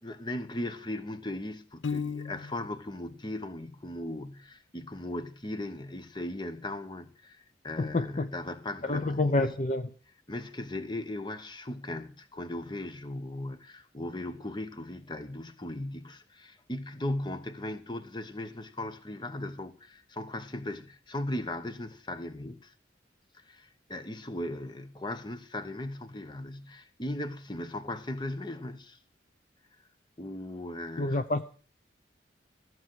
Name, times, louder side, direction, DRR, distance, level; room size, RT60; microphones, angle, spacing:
voice 1, 0.0-9.4 10.3-22.7 23.3-29.0 30.2-31.2, left 1 dB, 25° left, 1.0 m, -38 dB
Piano, 1.8-2.8, left 5 dB, 90° left, 0.7 m, -35 dB
voice 2, 7.8-8.3 8.9-9.9 31.0-31.5, left 2 dB, 40° left, 0.7 m, -28 dB
14.5 x 7.7 x 7.6 m
head